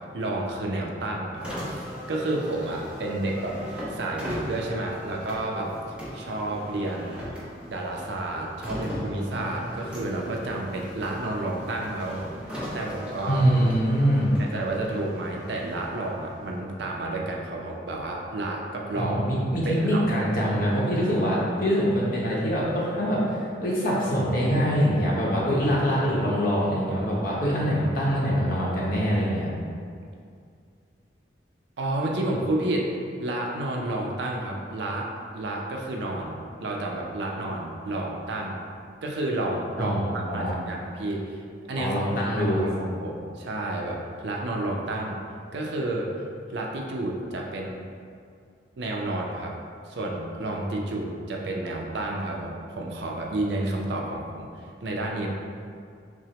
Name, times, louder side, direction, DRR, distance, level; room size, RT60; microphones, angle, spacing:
voice 1, 0.0-1.7 2.1-3.6 3.9-5.7 6.1-7.3 7.7-13.4 14.5-19.1 19.7-20.2 31.8-32.9 33.2-38.6 39.0-41.4 41.7-41.9 42.4-45.2 45.5-46.1 46.5-47.8 48.8-49.6 49.9-54.5 54.8-55.3, right 2 dB, 65° right, -1 dB, 0.5 m, -30 dB
Car, 1.3-16.7, equal, 5° right, 0.5 m, -39 dB
voice 2, 13.3-14.3 18.9-29.5 39.8-40.5 41.8-42.6, equal, 45° left, -6 dB, 0.8 m, -24 dB
5.9 x 2.0 x 2.8 m, 2.3 s
head